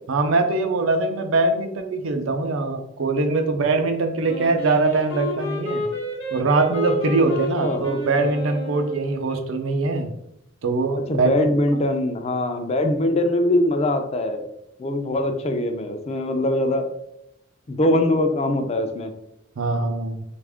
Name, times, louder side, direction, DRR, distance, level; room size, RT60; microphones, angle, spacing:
voice 1, 0.1-5.8 6.3-10.1 10.6-11.5 19.6-20.2, right 3 dB, 85° right, 5 dB, 0.5 m, -22 dB
Wind instrument woodwind instrument, 4.3-9.4, left 1 dB, 70° left, 0.9 m, -31 dB
voice 2, 7.3-7.8 11.1-14.5 14.8-16.9 17.7-19.1, left 1 dB, 30° left, 6 dB, 0.4 m, -22 dB
3.4 x 2.5 x 3.4 m, 0.80 s
head